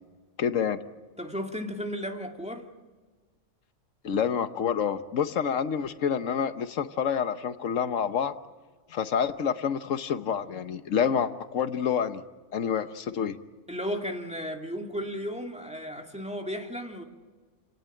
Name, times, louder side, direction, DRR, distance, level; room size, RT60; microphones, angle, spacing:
voice 1, 0.4-0.8 4.0-8.3 8.9-12.2 12.5-13.4, left 7 dB, 85° left, 12 dB, 1.3 m, -28 dB
voice 2, 1.2-2.7 13.7-17.0, equal, 5° right, 3 dB, 2.2 m, -34 dB
28.5 x 17.5 x 9.0 m, 1.4 s
omnidirectional pair, 1.3 m